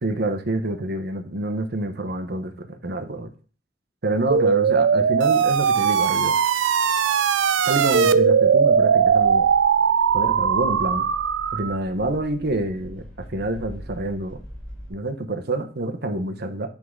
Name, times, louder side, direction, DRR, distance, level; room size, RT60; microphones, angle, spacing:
voice 1, 0.0-3.3 4.0-6.3 7.7-9.5 10.1-11.1 11.5-13.0 13.3-14.4 14.9-16.7, right 2 dB, 55° right, 7 dB, 0.9 m, -27 dB
sound 1, 4.3-11.8, right 6 dB, 80° right, 0.4 m, -19 dB
sound 2, 9.0-14.9, equal, 5° left, 3.5 m, -42 dB
9.6 x 3.8 x 3.7 m, 0.39 s
head